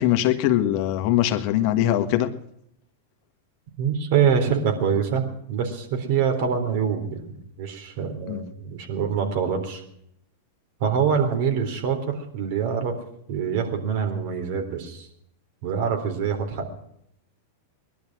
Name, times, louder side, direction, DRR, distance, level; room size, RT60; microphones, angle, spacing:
voice 1, 0.0-2.3 8.3-8.4, left 12 dB, 55° left, 8 dB, 1.6 m, -22 dB
voice 2, 3.8-9.8 10.8-13.0 13.3-15.1 15.6-16.7, right 7 dB, 60° right, 4 dB, 3.8 m, -25 dB
20.0 x 12.0 x 6.2 m, 0.74 s
hypercardioid pair, 105°, 0 cm